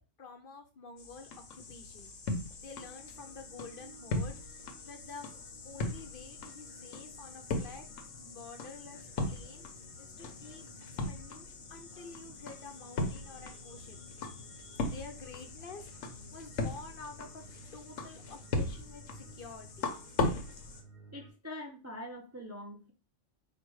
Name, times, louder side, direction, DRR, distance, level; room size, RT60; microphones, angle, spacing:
voice 1, 0.2-2.1 2.6-5.3 5.6-7.9 8.2-9.7 10.0-10.7 11.1-15.9 16.3-17.4 17.7-19.9, left 4 dB, 55° left, 5 dB, 0.7 m, -49 dB
sound 1, 1.0-20.8, left 2 dB, 90° left, 1.2 m, -39 dB
sound 2, 2.8-21.3, right 3 dB, 75° right, 1.6 m, -58 dB
voice 2, 21.1-22.9, left 1 dB, 20° right, 1 dB, 0.4 m, -44 dB
4.9 x 2.2 x 4.6 m, 0.33 s
omnidirectional pair, 1.3 m